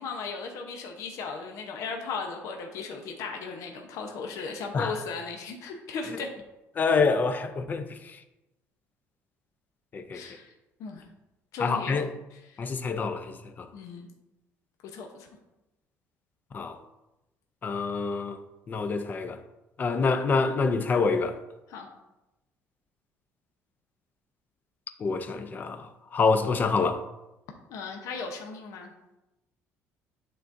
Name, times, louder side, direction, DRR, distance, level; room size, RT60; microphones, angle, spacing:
voice 1, 0.0-6.3 10.1-10.5 10.8-11.1 11.5-12.0 12.3-12.6 13.7-14.1 14.9-15.3 21.7-21.9 27.7-28.9, left 4 dB, 65° left, 0.9 m, -36 dB
voice 2, 6.8-8.0 9.9-10.2 11.6-12.1 12.6-13.7 16.5-16.8 17.6-18.4 18.7-19.4 19.8-21.4 25.0-27.0, left 4 dB, 30° left, 0.6 m, -26 dB
11.0 x 3.8 x 2.6 m
cardioid pair, 130°, 6 cm